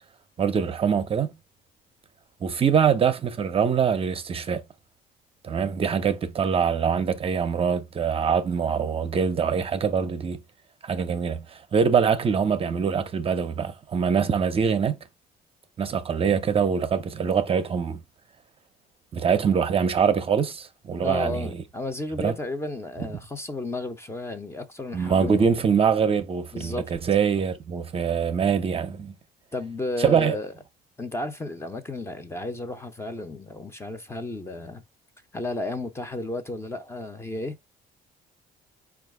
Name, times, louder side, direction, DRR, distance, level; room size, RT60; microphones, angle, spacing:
voice 1, 0.4-1.3 2.4-4.6 5.4-10.4 10.8-15.0 15.8-18.0 19.1-21.5 22.2-22.3 24.9-29.1 30.0-30.4, right 6 dB, 35° right, 0.6 m, -24 dB
voice 2, 21.0-25.5 26.5-26.9 29.5-30.5 31.0-34.8 35.3-37.6, left 2 dB, 15° left, 0.7 m, -33 dB
4.6 x 2.4 x 4.7 m
cardioid pair, 110°, 17 cm